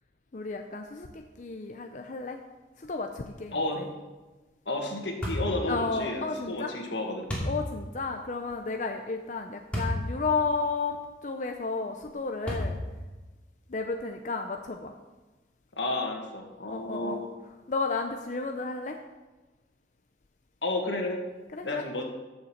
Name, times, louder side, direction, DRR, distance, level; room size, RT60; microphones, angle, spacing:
voice 1, 0.3-2.4 2.8-3.9 5.7-6.7 7.4-11.0 11.2-12.8 13.7-14.9 16.7-17.2 17.7-19.0 21.5-21.8, left 4 dB, 45° left, 4 dB, 0.6 m, -32 dB
voice 2, 3.5-3.9 4.7-7.3 15.8-17.3 20.6-21.2 21.6-22.0, left 2 dB, 85° left, 2 dB, 1.8 m, -32 dB
sound 1, 5.2-5.6 7.3-7.6 9.7-10.0 10.6-10.7 12.5-12.9, left 1 dB, 5° left, 2.6 m, -30 dB
13.5 x 6.7 x 4.5 m, 1.2 s
head